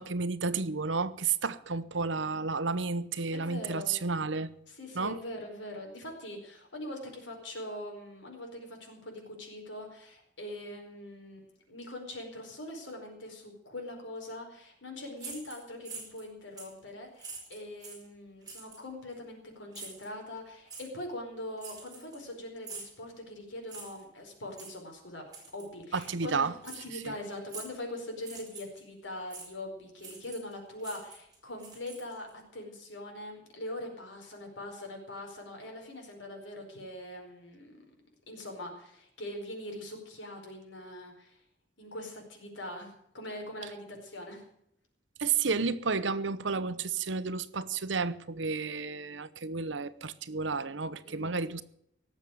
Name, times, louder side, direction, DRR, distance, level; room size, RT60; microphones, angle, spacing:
voice 1, 0.0-4.5 4.9-5.2 25.9-26.5 27.1-27.2 45.2-51.6, right 4 dB, 80° right, 0.9 m, -31 dB
voice 2, 3.3-4.0 4.7-25.2 25.5-32.3 32.5-37.8 38.3-41.4 41.8-44.5 46.6-46.7 51.0-51.4, left 1 dB, 85° left, 4.7 m, -42 dB
sound 1, 15.2-16.3 16.6-16.8 17.2-18.1 18.5-18.8 19.7-20.1 20.7-20.9 21.6-22.3 22.6-23.0 23.7-24.0 24.5-24.8 25.3-25.7 26.0-26.1 26.6-26.8 27.5-27.8 28.2-28.8 29.3-29.5 30.0-30.5 30.8-32.3, right 4 dB, 20° right, 5.2 m, -45 dB
18.0 x 7.3 x 9.3 m
head